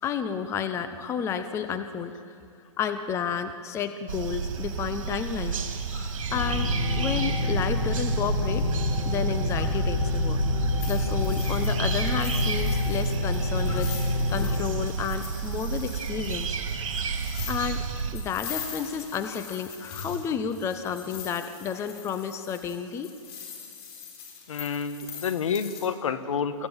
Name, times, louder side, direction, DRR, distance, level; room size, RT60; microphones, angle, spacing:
voice 1, 0.0-2.3 2.8-5.7 5.9-8.7 9.0-10.4 10.9-14.0 14.3-16.6 17.5-17.8 18.1-23.1, left 7 dB, 15° left, 10 dB, 0.9 m, -31 dB
sound 1, 4.1-18.1, right 5 dB, 70° right, 3.6 m, -32 dB
sound 2, 6.3-14.6, left 2 dB, 90° left, 5.4 m, -27 dB
sound 3, 10.8-25.9, left 6 dB, 45° left, 4.4 m, -42 dB
voice 2, 24.5-26.7, left 6 dB, 70° left, 11 dB, 1.6 m, -29 dB
23.5 x 16.0 x 9.0 m, 2.6 s
hypercardioid pair, 145°, 17 cm